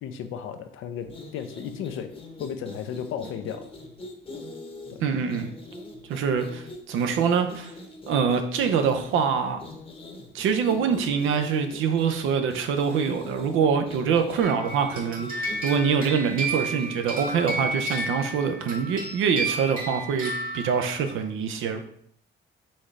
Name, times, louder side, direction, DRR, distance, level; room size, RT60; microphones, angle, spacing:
voice 1, 0.0-2.1 2.4-3.7 4.9-5.1, left 8 dB, 85° left, 8 dB, 0.5 m, -34 dB
sound 1, 1.0-18.1, left 2 dB, 30° left, 0.8 m, -43 dB
voice 2, 5.0-5.5 6.1-7.7 8.1-9.6 10.3-21.8, right 6 dB, 85° right, 7 dB, 0.6 m, -25 dB
sound 2, 14.4-21.0, right 2 dB, 45° right, 1.6 m, -32 dB
4.2 x 3.6 x 3.2 m, 0.66 s
cardioid pair, 90°, 20 cm